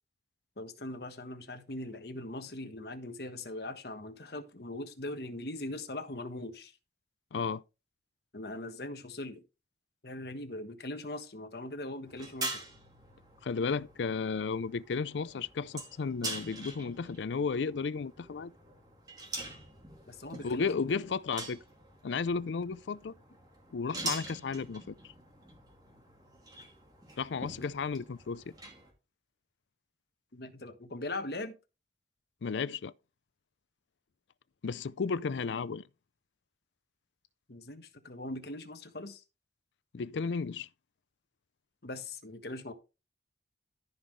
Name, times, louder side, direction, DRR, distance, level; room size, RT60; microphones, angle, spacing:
voice 1, 0.6-6.7 8.3-9.4 10.0-12.6 20.1-20.9 30.3-31.6 37.5-39.2 41.8-42.7, left 2 dB, 65° left, 1.3 m, -41 dB
voice 2, 7.3-7.6 13.4-18.5 20.4-21.6 22.0-23.1 23.7-25.0 27.2-28.5 32.4-32.9 34.6-35.8 39.9-40.7, left 5 dB, 85° left, 0.5 m, -33 dB
sound 1, 12.0-28.9, right 2 dB, 20° right, 2.4 m, -44 dB
14.0 x 5.5 x 3.2 m
head